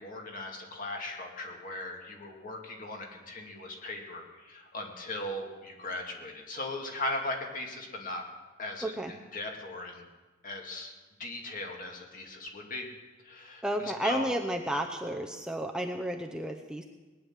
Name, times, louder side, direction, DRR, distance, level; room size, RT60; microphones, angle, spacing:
voice 1, 0.0-8.2 8.6-10.0 10.4-10.9 11.2-12.9 13.2-14.4, left 2 dB, 45° left, 1 dB, 2.3 m, -38 dB
voice 2, 13.6-16.9, right 1 dB, 5° right, 3 dB, 0.7 m, -32 dB
19.0 x 9.8 x 7.5 m, 1.3 s
head